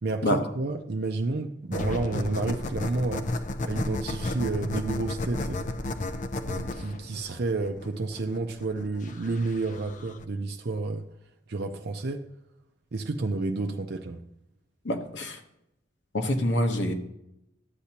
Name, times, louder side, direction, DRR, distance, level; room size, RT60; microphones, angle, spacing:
voice 1, 0.0-3.3 3.6-5.7 6.5-11.1 11.5-12.3 12.9-14.2, right 3 dB, 60° right, 0.6 m, -30 dB
sound 1, 1.7-10.2, left 2 dB, 40° left, 0.5 m, -33 dB
voice 2, 14.8-15.4 16.1-16.9, left 1 dB, 70° left, 1.1 m, -26 dB
13.0 x 8.2 x 2.9 m
head